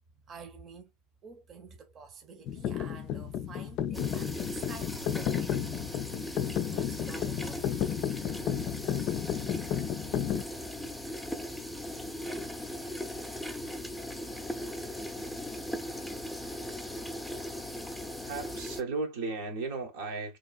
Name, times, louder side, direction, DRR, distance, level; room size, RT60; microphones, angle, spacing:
voice 1, 0.2-0.9 1.2-6.0 6.7-7.7 11.4-11.8, right 5 dB, 40° right, 0.8 m, -49 dB
sound 1, 2.5-10.4, left 10 dB, 55° left, 0.3 m, -32 dB
sound 2, 3.9-18.8, left 1 dB, ahead, 0.6 m, -39 dB
voice 2, 18.3-20.4, right 3 dB, 75° right, 1.0 m, -35 dB
3.0 x 2.4 x 2.3 m
hypercardioid pair, 85°, 0 cm